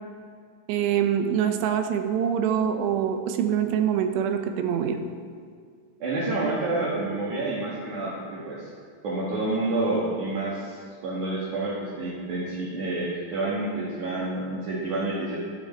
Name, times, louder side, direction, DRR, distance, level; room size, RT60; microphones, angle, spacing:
voice 1, 0.7-5.0, right 8 dB, 80° right, 7 dB, 2.9 m, -24 dB
voice 2, 6.0-8.7 9.0-10.8 11.0-15.4, right 2 dB, 55° right, -7 dB, 2.8 m, -28 dB
12.0 x 11.5 x 4.4 m, 2.1 s
omnidirectional pair, 5.1 m